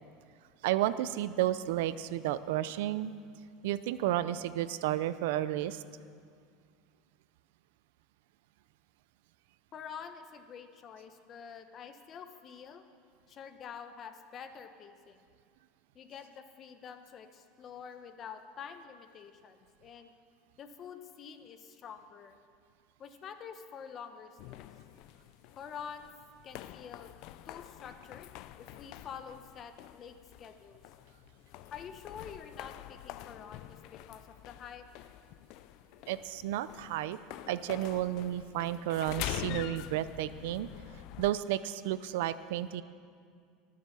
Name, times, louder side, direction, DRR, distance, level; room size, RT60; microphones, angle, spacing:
voice 1, 0.6-3.1 3.6-5.8 36.1-37.2 37.5-40.7 41.2-42.8, right 13 dB, 80° right, 14 dB, 0.6 m, -32 dB
voice 2, 9.7-12.8 13.3-15.2 15.9-20.1 20.6-22.4 23.0-24.7 25.6-26.1 26.4-27.1 27.4-28.3 28.6-30.8 31.7-34.9, left 7 dB, 30° left, 8 dB, 1.0 m, -47 dB
sound 1, 24.4-41.3, left 14 dB, 55° left, 0.4 m, -46 dB
23.0 x 7.7 x 6.9 m, 2.2 s
supercardioid pair, 150°, 0 cm